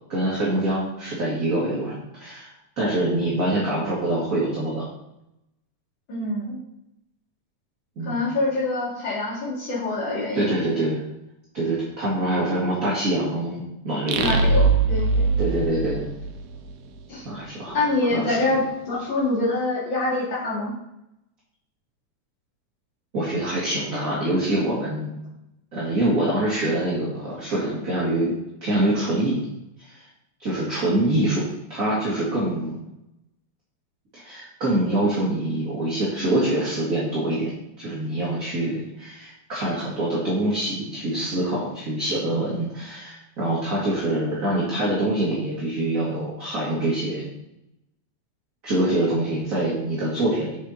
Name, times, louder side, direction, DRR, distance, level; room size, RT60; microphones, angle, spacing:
voice 1, 0.1-2.5 2.8-4.8 8.0-8.2 10.3-11.0 11.5-14.3 15.4-16.1 17.2-17.8 18.1-18.4 23.1-25.1 25.7-28.3 28.6-29.4 29.8-30.1 30.4-31.4 31.7-32.8 34.1-37.5 37.8-47.2 48.6-50.6, right 1 dB, 35° right, -7 dB, 1.9 m, -25 dB
voice 2, 6.1-6.6 8.0-10.6 14.2-15.3 17.1-17.3 17.7-20.7, left 2 dB, 40° left, -7 dB, 3.4 m, -25 dB
sound 1, 14.1-16.7, right 3 dB, 75° right, 2.0 m, -21 dB
7.9 x 6.6 x 4.2 m, 0.86 s
omnidirectional pair, 3.3 m